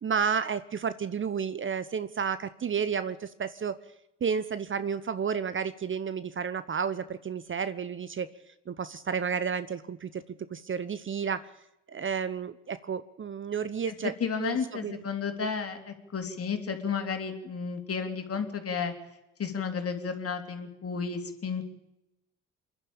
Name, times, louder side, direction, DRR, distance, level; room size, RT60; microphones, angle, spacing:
voice 1, 0.0-3.8 4.2-8.3 8.7-10.2 10.5-11.5 11.9-14.1 14.4-15.0, right 6 dB, 35° right, 14 dB, 1.1 m, -31 dB
voice 2, 14.2-18.9 19.4-21.6, left 6 dB, 40° left, 5 dB, 3.4 m, -32 dB
28.0 x 11.5 x 8.9 m, 0.89 s
hypercardioid pair, 50°, 37 cm